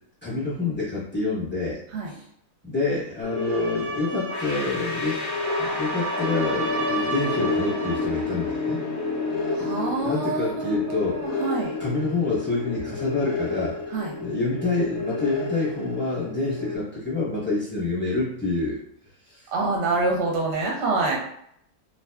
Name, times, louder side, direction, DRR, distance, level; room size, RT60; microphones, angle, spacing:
voice 1, 0.2-1.8 2.1-2.2 2.6-5.2 5.6-8.8 9.6-9.7 10.0-11.4 11.8-13.8 14.2-18.8 19.3-19.5, left 3 dB, 10° left, -8 dB, 0.7 m, -27 dB
sound 1, 3.2-16.8, left 3 dB, 70° left, 0.8 m, -33 dB
sound 2, 3.2-8.1, right 2 dB, 90° right, 0.5 m, -33 dB
sound 3, 4.3-15.2, left 3 dB, 85° left, 0.4 m, -32 dB
voice 2, 9.5-11.8 13.9-14.1 19.5-21.2, right 3 dB, 60° right, -2 dB, 0.8 m, -26 dB
2.5 x 2.2 x 2.2 m, 0.70 s
omnidirectional pair, 1.6 m